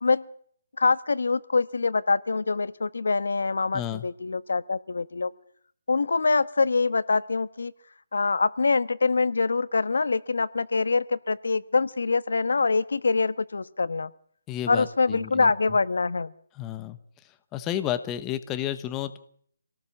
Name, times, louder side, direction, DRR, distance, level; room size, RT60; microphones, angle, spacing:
voice 1, 0.8-5.3 5.9-7.7 8.1-14.1 14.7-16.3, left 4 dB, 90° left, 16 dB, 1.2 m, -24 dB
voice 2, 3.7-4.0 14.5-15.5 16.6-17.0 17.5-19.2, left 11 dB, 10° left, 11 dB, 0.9 m, -31 dB
26.0 x 18.0 x 7.2 m, 0.62 s
hypercardioid pair, 175°, 0 cm